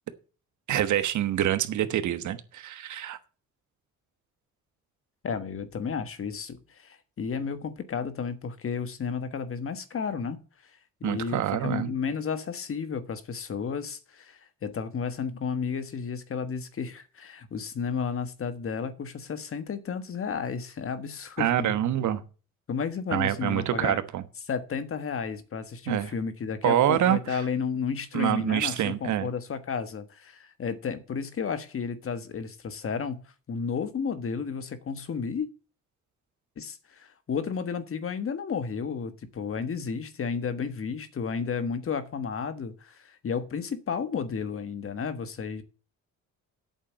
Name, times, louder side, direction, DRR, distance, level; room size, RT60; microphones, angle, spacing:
voice 1, 0.7-3.2 11.0-11.9 21.4-22.2 23.1-24.2 25.9-26.1 26.6-27.4 28.1-29.3, right 11 dB, 75° right, 1.2 m, -26 dB
voice 2, 5.2-10.4 11.0-21.8 22.7-24.0 24.5-35.5 36.6-45.6, left 6 dB, 45° left, 1.4 m, -32 dB
8.5 x 7.2 x 7.4 m
cardioid pair, 90°, 30 cm